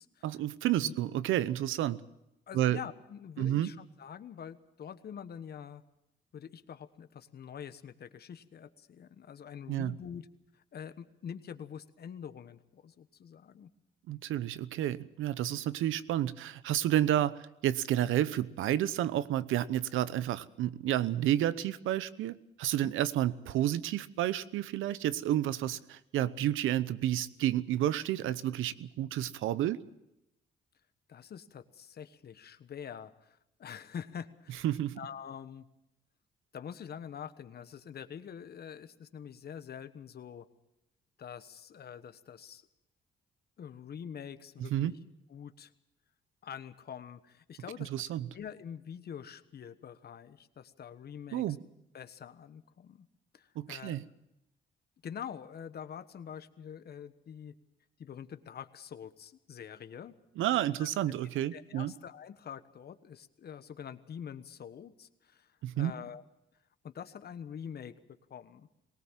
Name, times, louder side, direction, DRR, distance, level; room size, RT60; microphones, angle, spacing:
voice 1, 0.2-2.0 2.5-2.8 3.4-3.7 9.7-9.9 14.1-29.8 34.6-35.0 44.7-44.9 47.8-48.3 51.3-51.6 53.6-54.0 60.4-61.9 65.6-65.9, right 12 dB, 85° right, 17 dB, 0.8 m, -30 dB
voice 2, 2.5-5.8 6.3-10.3 10.5-13.7 22.8-22.9 26.2-26.5 31.1-34.6 35.0-35.7 36.5-40.5 41.2-42.6 43.6-44.9 45.3-45.7 46.4-48.0 48.3-51.4 51.9-53.1 53.3-54.1 55.0-57.5 58.0-60.1 60.8-60.9 61.5-66.2 66.8-67.9 68.3-68.7, left 8 dB, 55° left, 11 dB, 1.3 m, -45 dB
20.5 x 18.5 x 7.5 m, 0.87 s
cardioid pair, 90°, 20 cm